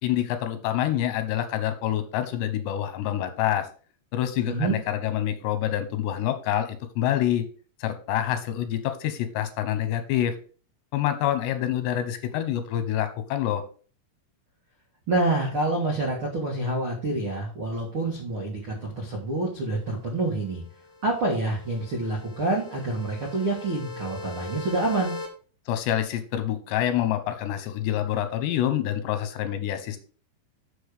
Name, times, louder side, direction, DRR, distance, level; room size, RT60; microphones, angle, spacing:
voice 1, 0.0-3.7 4.1-7.5 7.8-10.3 10.9-13.6 25.7-30.0, left 11 dB, 75° left, 9 dB, 3.0 m, -27 dB
voice 2, 4.4-4.8 15.1-20.6 21.0-25.1, right 2 dB, 75° right, -1 dB, 1.2 m, -27 dB
sound 1, 20.3-25.3, left 2 dB, 45° left, 1.7 m, -40 dB
7.0 x 6.7 x 4.9 m, 0.39 s
omnidirectional pair, 5.5 m